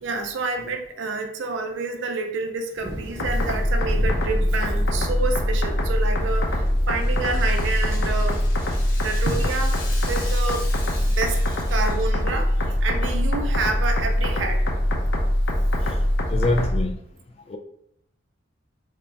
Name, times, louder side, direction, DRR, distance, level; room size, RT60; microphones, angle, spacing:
voice 1, 0.0-8.4 9.0-9.8 10.1-10.7 10.9-14.7 15.9-16.0, right 3 dB, 70° right, 4 dB, 0.4 m, -29 dB
sound 1, 2.8-16.7, equal, 10° left, 0.8 m, -39 dB
sound 2, 3.2-16.8, left 1 dB, 75° left, 0.7 m, -23 dB
Rattle (instrument), 6.2-12.4, left 3 dB, 50° left, 1.1 m, -41 dB
voice 2, 16.3-17.0 17.5-17.6, left 2 dB, 30° left, 5 dB, 0.3 m, -25 dB
3.4 x 2.1 x 3.9 m, 0.74 s
head